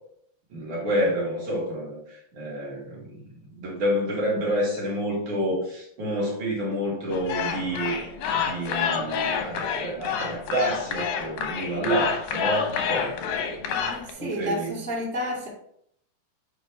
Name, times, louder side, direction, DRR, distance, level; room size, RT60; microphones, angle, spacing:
voice 1, 0.5-13.2 14.2-14.8, equal, 55° right, -4 dB, 2.6 m, -29 dB
sound 1, 7.1-14.1, left 6 dB, 75° left, 2.0 m, -28 dB
voice 2, 13.7-15.5, equal, 5° left, -6 dB, 0.8 m, -31 dB
8.2 x 5.0 x 3.3 m, 0.69 s
omnidirectional pair, 5.0 m